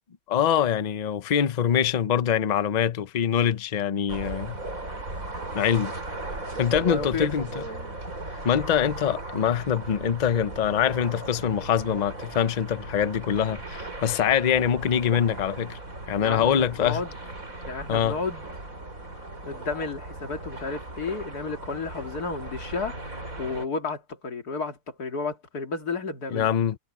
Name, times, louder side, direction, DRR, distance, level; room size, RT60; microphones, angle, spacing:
voice 1, 0.3-4.6 5.5-5.9 6.6-7.6 8.4-15.8 16.1-17.0 17.9-18.2 26.3-26.8, left 9 dB, 45° left, 0.6 m, -24 dB
sound 1, 4.1-23.7, right 2 dB, 60° right, 5.6 m, -37 dB
voice 2, 6.9-7.3 16.2-17.1 17.7-18.5 19.4-23.0 23.4-26.5, left 4 dB, 80° left, 2.8 m, -32 dB
omnidirectional pair, 1.6 m